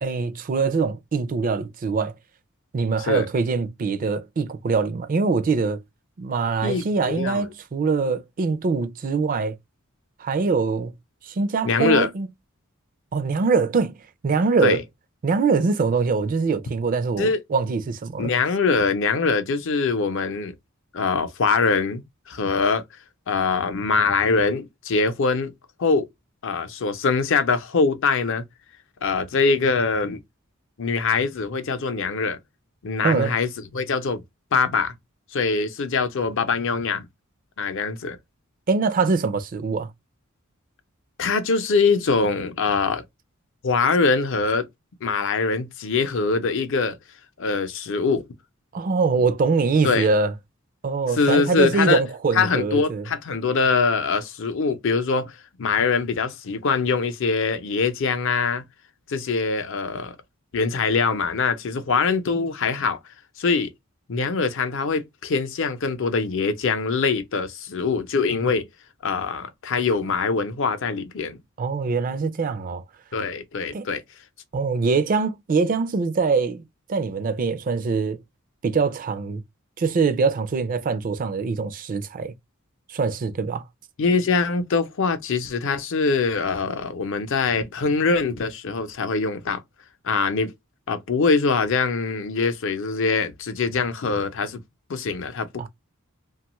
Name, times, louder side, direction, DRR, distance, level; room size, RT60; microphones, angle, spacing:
voice 1, 0.0-2.1 2.7-5.8 6.2-9.6 10.2-10.9 11.2-12.3 13.1-14.0 14.2-14.8 15.2-18.3 33.0-33.3 38.7-39.9 48.7-50.3 50.8-53.0 71.6-72.8 73.7-73.9 74.5-76.6 76.9-78.2 78.6-79.4 79.8-82.3 82.9-83.6 95.6-95.7, right 4 dB, 40° right, 0.4 m, -23 dB
voice 2, 6.6-7.5 11.6-12.1 14.6-14.8 17.2-17.4 18.2-20.5 20.9-22.8 23.3-25.5 25.8-26.1 26.4-28.4 29.0-30.2 30.8-32.4 32.8-34.2 34.5-34.9 35.3-37.0 37.6-38.2 41.2-43.0 43.6-44.7 45.0-47.0 47.4-48.2 49.8-50.1 51.1-52.0 52.3-55.3 55.6-58.6 59.1-60.2 60.5-63.0 63.4-63.7 64.1-68.6 69.0-71.4 73.1-74.0 84.0-89.6 90.0-90.5 90.9-94.6 94.9-95.5, left 4 dB, 65° left, 0.6 m, -23 dB
2.9 x 2.3 x 2.9 m
head